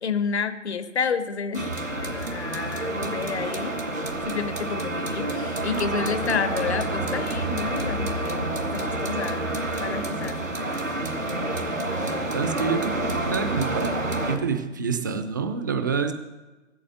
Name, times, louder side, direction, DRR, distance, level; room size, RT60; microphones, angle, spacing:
voice 1, 0.0-1.7 2.0-3.7 4.3-9.5 9.8-10.4, left 6 dB, 60° left, 11 dB, 1.2 m, -30 dB
sound 1, 1.5-14.4, right 2 dB, 85° right, 2.0 m, -28 dB
voice 2, 11.6-16.1, right 5 dB, 15° right, 8 dB, 0.5 m, -28 dB
14.5 x 8.6 x 8.0 m, 1.2 s
figure-of-eight pair, 135°, 38 cm